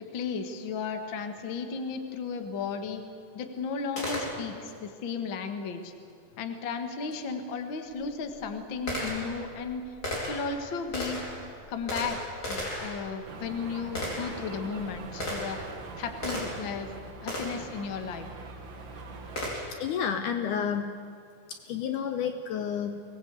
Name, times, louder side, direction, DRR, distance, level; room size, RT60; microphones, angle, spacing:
voice 1, 0.1-3.0 3.3-5.9 6.4-9.8 10.3-11.2 11.7-12.2 12.5-15.6 16.0-16.9 17.2-18.3, left 5 dB, 45° left, 6 dB, 1.7 m, -34 dB
Gunshot gunfire, 4.0-4.8 7.1-7.2 7.9-16.8 17.3-17.7 19.4-19.9, left 1 dB, 25° left, 4.7 m, -36 dB
sound 1, 13.2-19.5, right 4 dB, 45° right, 1.7 m, -43 dB
voice 2, 19.7-20.9 21.7-23.0, left 7 dB, 70° left, 7 dB, 2.2 m, -30 dB
23.0 x 19.0 x 8.2 m, 2.2 s
omnidirectional pair, 4.1 m